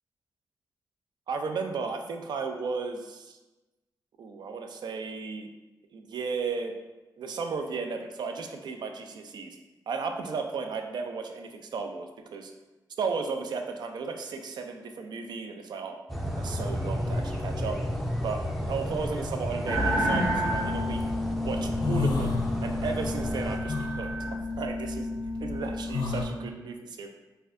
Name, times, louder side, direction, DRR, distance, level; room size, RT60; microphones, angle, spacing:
voice 1, 1.3-3.4 4.2-5.5 5.9-6.8 7.2-9.6 9.9-12.5 13.0-16.0 16.4-17.8 18.2-18.4 18.7-21.0 21.4-22.3 22.6-25.1 25.4-27.1, right 5 dB, 70° right, 5 dB, 0.4 m, -34 dB
sound 1, 16.1-23.6, equal, ahead, 0.4 m, -32 dB
sound 2, 19.6-26.3, left 1 dB, 55° right, 1.3 m, -31 dB
sound 3, 20.2-21.0 21.4-23.0 23.2-26.2, left 4 dB, 75° left, 0.6 m, -32 dB
4.1 x 2.6 x 2.5 m, 1.1 s
wide cardioid pair, 115°, 8 cm